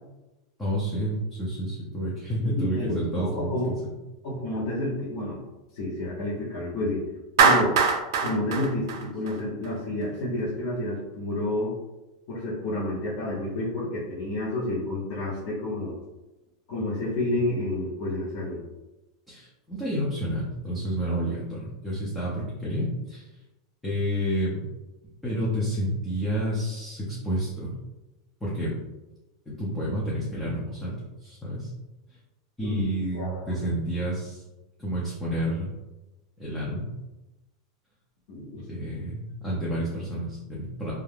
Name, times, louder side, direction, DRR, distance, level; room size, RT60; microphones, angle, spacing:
voice 1, 0.6-3.7 19.3-23.3 23.8-24.6 25.2-27.8 28.4-28.8 29.5-31.7 32.6-34.4 34.8-35.7 36.4-36.9 38.7-40.9, equal, 5° left, -8 dB, 0.5 m, -29 dB
voice 2, 2.4-3.8 4.2-5.4 5.7-7.0 7.4-7.7 8.2-11.7 12.3-16.0 16.7-18.6 32.6-32.8 33.1-33.6 38.3-38.6, left 1 dB, 50° left, -8 dB, 0.7 m, -30 dB
Clapping, 7.4-9.7, right 5 dB, 65° right, 0.3 m, -22 dB
2.3 x 2.1 x 3.2 m, 1.0 s
supercardioid pair, 170°, 2 cm